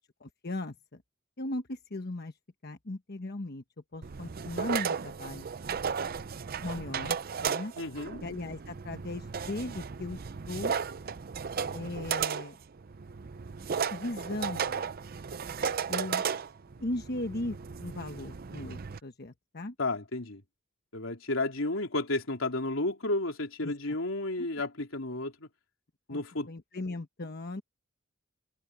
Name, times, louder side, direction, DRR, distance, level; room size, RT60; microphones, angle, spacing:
voice 1, 0.2-1.0 1.4-2.3 2.6-3.6 3.9-5.5 6.6-7.7 8.2-10.2 10.5-10.8 11.7-12.6 13.9-14.8 15.9-16.2 16.8-19.7 23.6-24.0 24.4-24.5 26.1-27.6, left 2 dB, 50° left, 1.1 m, -37 dB
sound 1, 4.0-19.0, right 6 dB, 50° right, 0.6 m, -35 dB
voice 2, 7.8-8.2 19.8-20.4 20.9-25.5 26.1-26.5, left 2 dB, 85° left, 3.3 m, -32 dB
head